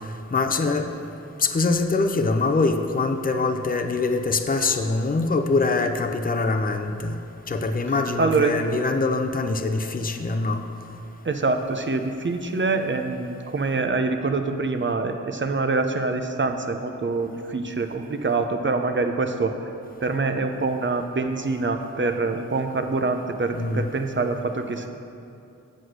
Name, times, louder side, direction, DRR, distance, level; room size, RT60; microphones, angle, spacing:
voice 1, 0.3-0.9 1.4-7.2 7.5-10.6 23.5-23.9, left 3 dB, 30° left, 5 dB, 0.6 m, -23 dB
voice 2, 8.2-8.5 11.2-19.5 20.0-24.9, right 3 dB, 40° right, 6 dB, 0.7 m, -25 dB
7.7 x 6.3 x 6.4 m, 2.6 s
wide cardioid pair, 70°, 30 cm